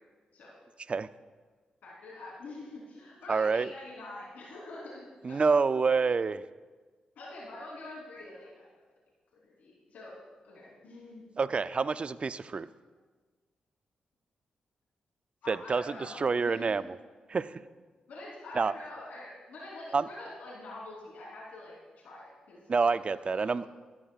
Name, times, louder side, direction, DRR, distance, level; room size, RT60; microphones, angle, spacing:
voice 1, 1.8-5.5 7.2-8.7 9.4-10.2 10.4-11.2 15.4-16.9 18.1-23.7, left 2 dB, 80° left, -5 dB, 3.5 m, -46 dB
voice 2, 3.3-3.7 5.2-6.4 11.4-12.7 15.5-17.0 17.3-17.6 18.6-18.7 19.9-20.1 22.7-23.7, right 4 dB, 45° right, 15 dB, 0.4 m, -27 dB
14.0 x 13.5 x 2.4 m, 1.4 s
cardioid pair, 60°, 3 cm